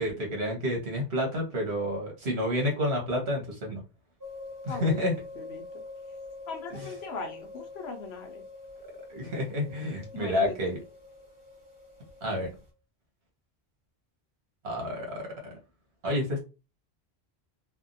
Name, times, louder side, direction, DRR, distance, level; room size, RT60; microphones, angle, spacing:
voice 1, 0.0-3.8 4.6-5.1 9.1-10.8 12.2-12.5 14.6-15.3 16.0-16.4, left 1 dB, 90° right, 0 dB, 1.4 m, -29 dB
sound 1, 4.2-12.7, left 2 dB, 20° right, 0.7 m, -45 dB
voice 2, 4.7-5.6 6.5-8.4 10.1-10.7, left 4 dB, 80° left, 3 dB, 0.9 m, -39 dB
3.4 x 2.2 x 2.6 m, 0.30 s
omnidirectional pair, 1.1 m